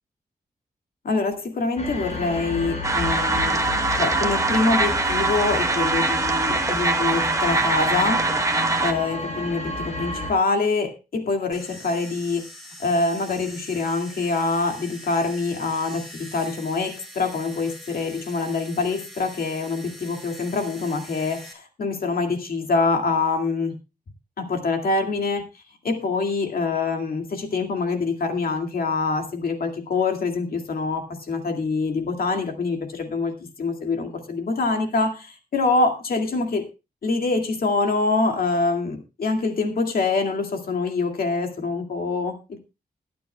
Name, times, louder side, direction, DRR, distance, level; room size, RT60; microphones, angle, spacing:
voice 1, 1.0-3.6 4.0-8.3 8.8-12.4 12.8-23.8 24.4-25.4 25.8-36.7 37.0-42.6, left 3 dB, 70° left, 4 dB, 2.2 m, -25 dB
sound 1, 1.8-10.3, left 2 dB, 50° left, 3.9 m, -32 dB
sound 2, 2.8-8.9, right 3 dB, 20° right, 1.0 m, -23 dB
sound 3, 11.5-21.5, equal, ahead, 3.5 m, -43 dB
21.5 x 9.4 x 2.2 m, 0.28 s
wide cardioid pair, 125°, 16 cm